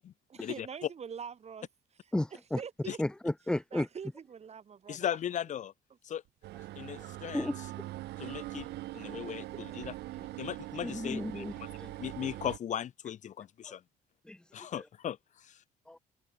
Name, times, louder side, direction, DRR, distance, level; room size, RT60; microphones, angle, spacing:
voice 1, 0.3-1.7 2.3-3.0 3.7-5.1, right 7 dB, 40° right, 7.0 m, -44 dB
voice 2, 2.1-2.6 3.0-3.9 7.0-7.1 7.3-7.6 10.2-10.3 10.8-11.9 13.6-13.7 14.3-14.8 15.9-16.0, left 1 dB, 5° left, 0.4 m, -34 dB
voice 3, 4.9-5.7 6.0-6.2 6.8-7.5 8.2-8.7 8.9-9.9 10.4-11.4 12.0-13.8 14.5-15.6, left 10 dB, 45° left, 0.8 m, -37 dB
sound 1, 6.4-12.6, right 17 dB, 85° right, 1.4 m, -42 dB
cardioid pair, 115°, 17 cm